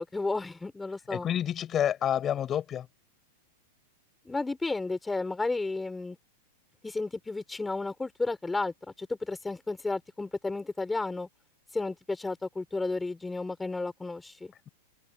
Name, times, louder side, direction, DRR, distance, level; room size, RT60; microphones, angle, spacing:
voice 1, 0.0-1.3 4.3-6.2 6.8-11.3 11.7-14.5, left 3 dB, 10° left, 5.4 m, -32 dB
voice 2, 1.1-2.9, left 10 dB, 30° left, 7.2 m, -28 dB
open air
hypercardioid pair, 125°, 0 cm